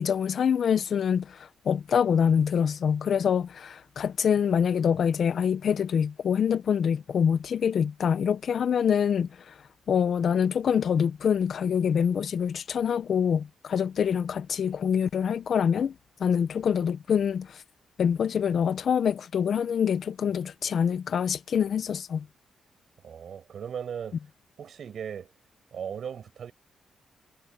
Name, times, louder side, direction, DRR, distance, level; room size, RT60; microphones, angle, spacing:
voice 1, 0.0-9.5 9.9-17.6 18.0-22.3, left 7 dB, 60° left, 0.9 m, -25 dB
voice 2, 23.0-24.2 24.6-25.3 25.7-26.5, right 8 dB, 65° right, 7.8 m, -37 dB
cardioid pair, 90°, 0 cm